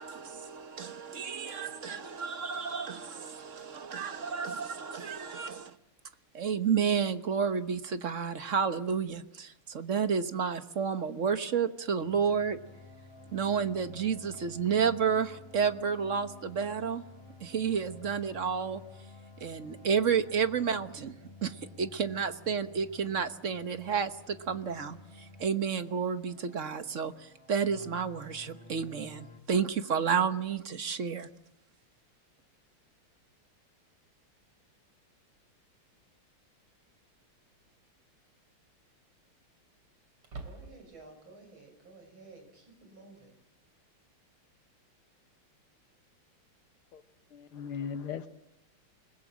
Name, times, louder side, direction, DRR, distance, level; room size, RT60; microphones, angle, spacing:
voice 1, 0.0-5.8 6.3-12.6 13.3-17.0 17.4-18.8 19.4-31.3, right 6 dB, 45° right, 1.2 m, -31 dB
sound 1, 12.0-29.4, left 2 dB, 15° left, 2.2 m, -52 dB
sound 2, 35.6-35.7 37.5-37.9 38.3-38.4 40.2-41.1, right 3 dB, 90° right, 4.0 m, -46 dB
voice 2, 40.4-43.3, right 3 dB, 65° right, 7.0 m, -53 dB
voice 3, 47.3-48.3, left 7 dB, 90° left, 2.1 m, -38 dB
29.5 x 21.0 x 7.5 m
omnidirectional pair, 2.3 m